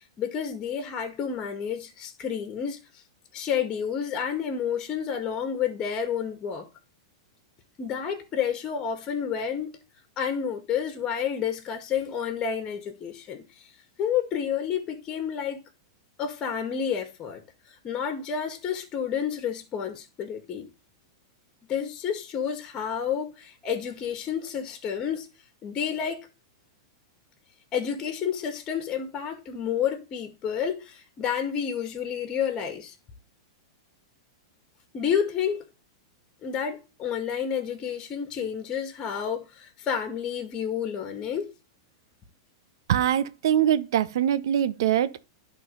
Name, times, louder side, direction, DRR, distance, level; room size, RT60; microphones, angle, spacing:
voice 1, 0.2-2.8 3.3-6.7 7.8-9.8 10.2-13.4 14.0-15.6 16.2-17.4 17.8-20.7 21.7-25.3 25.6-26.3 27.7-32.9 34.9-35.6 36.4-41.5, left 8 dB, 30° left, 1.8 m, -30 dB
voice 2, 42.9-45.3, right 10 dB, 70° right, 0.7 m, -23 dB
11.0 x 3.9 x 5.3 m
hypercardioid pair, 115°, 2 cm